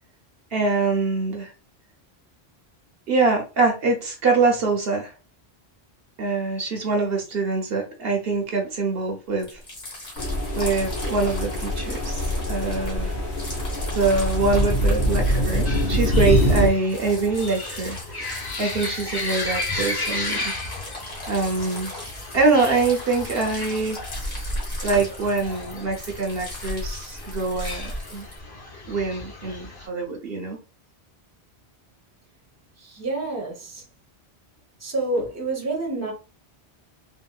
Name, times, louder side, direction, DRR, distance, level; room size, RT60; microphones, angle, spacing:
voice 1, 0.5-1.5 3.1-5.1 6.2-9.6 10.6-13.1 13.9-18.0 18.6-20.5 21.3-21.9 22.3-24.0 24.8-28.3 28.9-30.6, right 3 dB, 65° right, 0.9 m, -24 dB
sound 1, 9.4-28.4, left 1 dB, 45° left, 1.3 m, -37 dB
sound 2, 10.2-16.7, equal, 70° left, 1.4 m, -24 dB
sound 3, 15.6-29.9, left 2 dB, 25° left, 0.6 m, -34 dB
voice 2, 32.8-33.8 34.8-36.1, right 2 dB, 15° right, 0.8 m, -28 dB
3.7 x 2.3 x 2.2 m
omnidirectional pair, 1.1 m